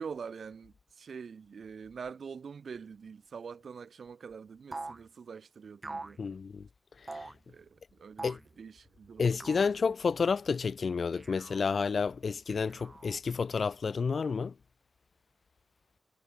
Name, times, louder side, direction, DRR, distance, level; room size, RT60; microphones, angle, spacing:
voice 1, 0.0-6.2 7.5-8.3 8.6-9.5, right 6 dB, 70° right, 3.5 m, -45 dB
sound 1, 4.7-5.0 5.8-6.2 7.1-7.4 8.2-8.5 9.4-9.7 11.1-11.6 12.5-13.2, right 2 dB, 25° right, 3.5 m, -43 dB
voice 2, 6.2-6.7 8.2-8.4 9.2-14.5, left 5 dB, 60° left, 0.3 m, -30 dB
wide cardioid pair, 150°, 0 cm